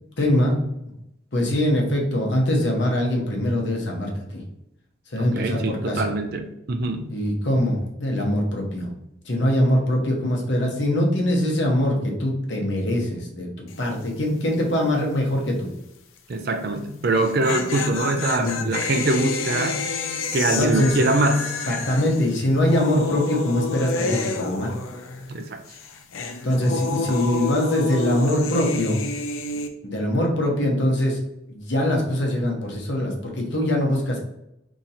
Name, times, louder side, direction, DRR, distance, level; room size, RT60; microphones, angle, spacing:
voice 1, 0.2-0.6 1.3-4.4 5.1-6.0 7.1-8.9 9.2-15.7 18.3-18.6 20.6-21.0 21.7-24.7 26.4-29.0 29.8-31.2 31.5-34.2, left 1 dB, 60° left, 0 dB, 0.9 m, -23 dB
voice 2, 5.2-7.1 16.3-19.8 20.3-21.6 25.3-25.6 26.9-27.3, right 2 dB, 50° right, 6 dB, 0.4 m, -24 dB
sound 1, 13.7-14.0 14.3-14.4 17.0-25.4 25.7-29.7, left 4 dB, 90° left, 0.5 m, -29 dB
2.9 x 2.6 x 4.1 m, 0.84 s
head